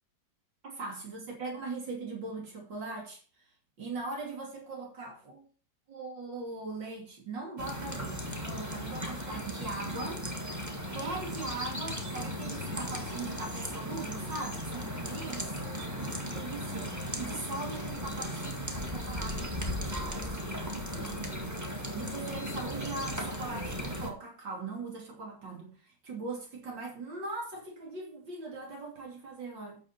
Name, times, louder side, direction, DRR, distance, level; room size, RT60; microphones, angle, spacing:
voice 1, 0.6-3.2 3.8-5.5 5.9-10.2 10.9-15.5 16.3-29.8, right 3 dB, 85° right, 0 dB, 3.5 m, -40 dB
sound 1, 7.6-24.1, equal, 10° right, 1.5 m, -36 dB
8.7 x 6.4 x 5.8 m, 0.38 s
omnidirectional pair, 1.9 m